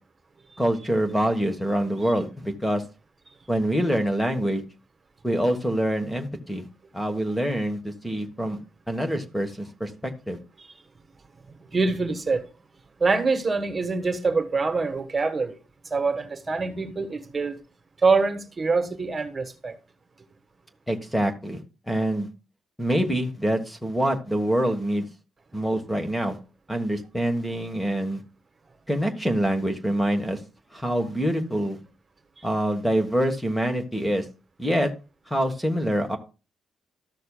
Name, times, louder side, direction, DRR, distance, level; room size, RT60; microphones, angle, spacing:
voice 1, 0.6-2.8 3.5-4.6 5.2-6.6 6.9-8.6 8.9-10.4 20.9-21.6 21.9-22.3 22.8-25.1 25.5-26.4 26.7-28.2 28.9-30.4 30.7-31.8 32.4-34.3 34.6-34.9 35.3-36.2, equal, 5° left, 1.3 m, -25 dB
voice 2, 11.7-12.4 13.0-15.6 15.9-17.6 18.0-19.8 32.4-32.5, right 4 dB, 30° right, 1.2 m, -25 dB
13.5 x 6.5 x 2.3 m
cardioid pair, 90°, 0 cm